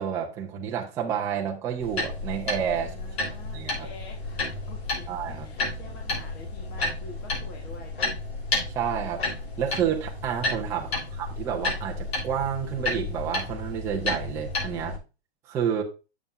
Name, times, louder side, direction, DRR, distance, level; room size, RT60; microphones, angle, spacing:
voice 1, 0.0-3.0 3.5-3.9 5.1-5.5 8.7-9.3 9.6-15.0 15.5-15.8, right 8 dB, 10° right, 0.6 m, -30 dB
sound 1, 1.8-15.0, left 2 dB, 70° left, 4.4 m, -32 dB
voice 2, 2.8-8.0 10.7-11.1 14.8-15.0, left 3 dB, 25° left, 1.3 m, -47 dB
9.1 x 7.1 x 2.5 m
hypercardioid pair, 165°, 33 cm